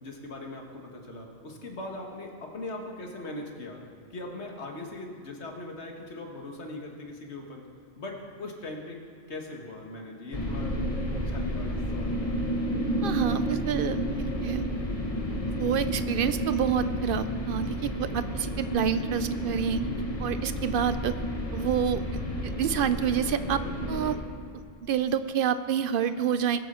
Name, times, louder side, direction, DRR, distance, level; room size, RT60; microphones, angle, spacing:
voice 1, 0.0-3.8 4.1-7.6 8.0-9.0 9.3-10.8 11.0-12.2, left 2 dB, 75° left, 1 dB, 1.7 m, -40 dB
sound 1, 10.3-24.2, equal, 35° left, 1.2 m, -31 dB
voice 2, 13.0-14.0 14.4-14.6 15.5-19.8 20.2-21.1 21.5-22.0 22.4-23.6 23.9-24.2 24.8-26.6, right 8 dB, 60° right, 12 dB, 0.6 m, -28 dB
20.0 x 7.7 x 4.3 m, 2.4 s
omnidirectional pair, 1.1 m